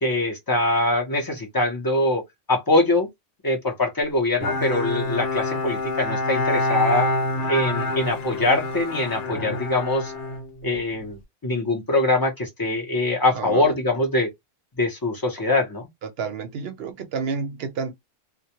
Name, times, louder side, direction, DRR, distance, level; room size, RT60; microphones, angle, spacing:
voice 1, 0.0-2.2 2.5-3.1 3.4-7.1 7.5-10.1 10.6-14.3 14.8-15.9, left 2 dB, 30° left, 0.4 m, -23 dB
Bowed string instrument, 4.4-11.1, left 2 dB, 70° left, 0.9 m, -27 dB
voice 2, 13.4-13.7 16.0-17.9, right 5 dB, 65° right, 0.7 m, -30 dB
2.2 x 2.0 x 2.8 m
omnidirectional pair, 1.3 m